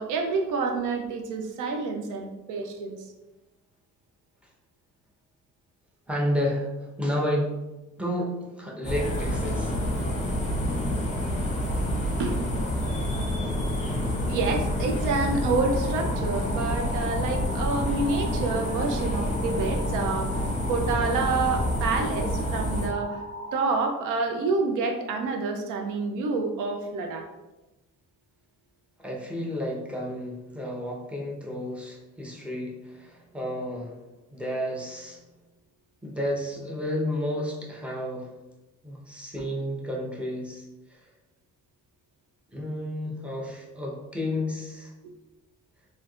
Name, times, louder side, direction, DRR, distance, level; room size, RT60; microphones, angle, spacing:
voice 1, 0.0-3.0 12.2-12.4 14.3-23.2 23.5-27.3 39.4-39.5, right 3 dB, 85° right, 3 dB, 0.5 m, -28 dB
voice 2, 6.1-7.5 8.0-9.8 29.0-34.0 34.3-35.2 36.0-38.3 38.8-41.0 42.5-44.9, left 1 dB, 5° right, -3 dB, 0.8 m, -31 dB
sound 1, 8.8-22.9, left 1 dB, 25° left, 0.8 m, -28 dB
sound 2, 15.5-23.6, right 1 dB, 35° right, 1.3 m, -39 dB
3.4 x 2.7 x 2.4 m, 1.0 s
cardioid pair, 90°, 30 cm